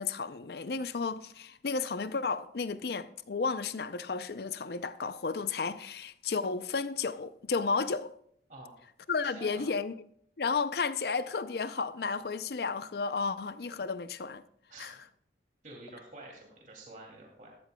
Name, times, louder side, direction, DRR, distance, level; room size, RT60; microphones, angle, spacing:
voice 1, 0.0-8.1 9.1-9.9 10.4-14.4 14.8-14.9, left 4 dB, 60° left, 0.5 m, -33 dB
voice 2, 9.2-9.7 14.7-15.0 15.6-17.5, right 2 dB, 45° right, 2.6 m, -48 dB
13.0 x 13.0 x 2.3 m
head